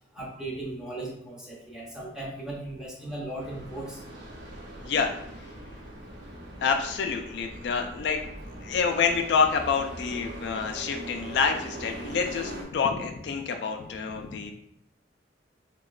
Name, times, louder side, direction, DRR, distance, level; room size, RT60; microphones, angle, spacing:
voice 1, 0.2-4.0, right 1 dB, 5° right, -4 dB, 0.6 m, -37 dB
sound 1, 3.4-12.6, right 1 dB, 75° right, 0.8 m, -41 dB
voice 2, 4.8-5.1 6.6-8.2 8.6-14.5, left 5 dB, 65° left, 4 dB, 0.3 m, -27 dB
3.9 x 2.1 x 2.3 m, 0.73 s
head